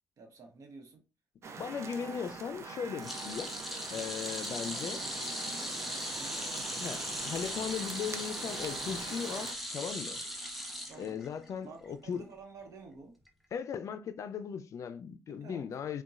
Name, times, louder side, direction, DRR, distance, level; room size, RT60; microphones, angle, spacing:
voice 1, 0.2-1.0 4.7-6.5 10.9-11.2 11.6-13.2 15.3-15.9, right 3 dB, 70° right, 0.9 m, -51 dB
sound 1, 1.4-9.5, right 5 dB, 55° right, 0.5 m, -44 dB
voice 2, 1.6-3.5 3.9-5.0 6.8-10.2 11.0-12.3 13.5-16.0, left 7 dB, 65° left, 0.4 m, -38 dB
sound 2, 3.0-11.5 11.8-12.1 13.3-13.4, equal, ahead, 0.6 m, -39 dB
3.9 x 2.2 x 2.4 m
cardioid pair, 95°, 6 cm